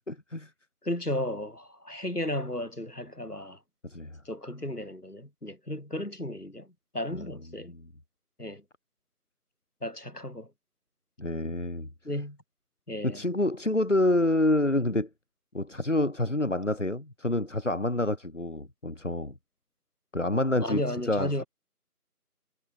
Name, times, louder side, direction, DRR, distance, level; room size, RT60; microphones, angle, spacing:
voice 1, 0.1-0.5 3.8-4.2 7.1-7.3 7.6-7.9 11.2-11.9 13.0-15.1 15.5-19.3 20.1-21.4, left 1 dB, 50° left, 1.6 m, -28 dB
voice 2, 0.8-3.6 4.3-6.7 6.9-7.7 8.4-8.6 9.8-10.5 12.1-12.4 12.9-13.2 20.6-21.5, left 1 dB, 75° left, 7.2 m, -34 dB
figure-of-eight pair, 175°, 46 cm